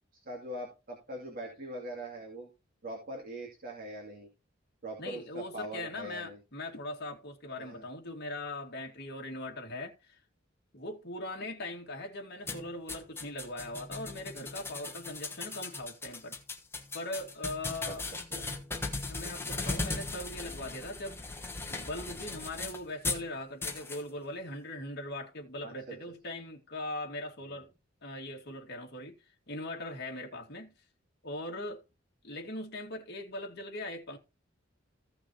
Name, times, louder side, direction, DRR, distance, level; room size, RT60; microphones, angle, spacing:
voice 1, 0.3-2.5 2.8-4.3 4.8-6.4 7.6-7.9 17.8-18.5 25.6-26.0 27.5-27.6, right 1 dB, 45° right, 2.6 m, -42 dB
voice 2, 5.0-10.2 10.7-16.4 16.9-18.1 19.1-21.3 21.7-27.7 28.0-29.1 29.5-30.7 31.2-31.8 32.2-34.2, left 1 dB, 55° left, 2.2 m, -40 dB
sound 1, 12.5-23.3 23.6-24.0, left 3 dB, 10° left, 1.3 m, -38 dB
15.5 x 6.0 x 2.9 m
head